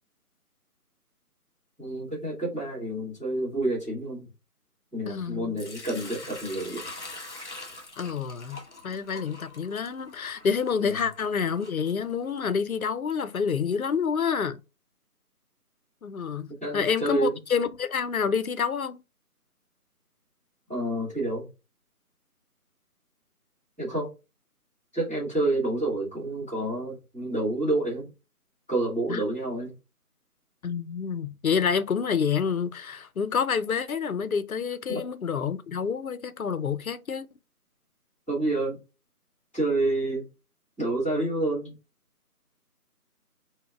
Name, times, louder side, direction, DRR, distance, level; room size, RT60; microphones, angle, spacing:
voice 1, 1.8-4.3 4.9-6.8 10.8-10.9 16.6-17.4 20.7-21.5 23.8-24.1 24.9-28.1 28.7-29.7 34.9-35.0 38.3-38.8 39.5-40.3 40.8-41.7, right 2 dB, 10° left, 1.6 m, -28 dB
voice 2, 5.1-5.6 8.0-14.6 16.0-19.0 29.1-29.2 30.6-37.3, left 6 dB, 65° left, 0.5 m, -28 dB
Sink (filling or washing) / Liquid, 5.6-12.5, left 2 dB, 50° left, 1.2 m, -44 dB
4.0 x 2.1 x 3.6 m
figure-of-eight pair, 165°, 46 cm